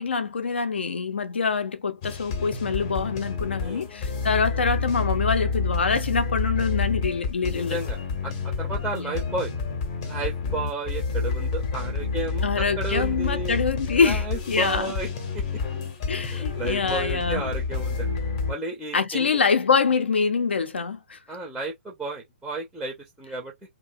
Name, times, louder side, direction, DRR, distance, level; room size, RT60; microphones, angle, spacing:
voice 1, 0.0-7.8 8.9-9.2 12.4-14.9 16.1-17.4 18.9-21.2, left 5 dB, 60° left, 0.6 m, -25 dB
sound 1, 2.0-18.5, left 4 dB, 30° left, 0.7 m, -29 dB
voice 2, 7.5-9.5 10.0-13.6 14.0-15.1 15.3-15.4 16.3-18.1 18.5-19.4 21.3-23.5, right 2 dB, ahead, 0.5 m, -33 dB
2.6 x 2.2 x 2.5 m
figure-of-eight pair, 125°, 7 cm